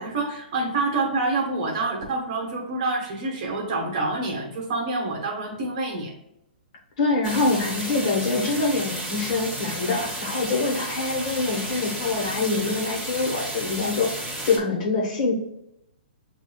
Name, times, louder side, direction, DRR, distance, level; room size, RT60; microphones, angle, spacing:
voice 1, 0.0-6.1, right 3 dB, 40° right, -1 dB, 1.4 m, -27 dB
voice 2, 7.0-15.3, left 3 dB, 40° left, -1 dB, 1.3 m, -25 dB
sound 1, 7.2-14.6, right 1 dB, ahead, 1.3 m, -32 dB
7.3 x 2.7 x 2.3 m, 0.81 s
hypercardioid pair, 160°, 5 cm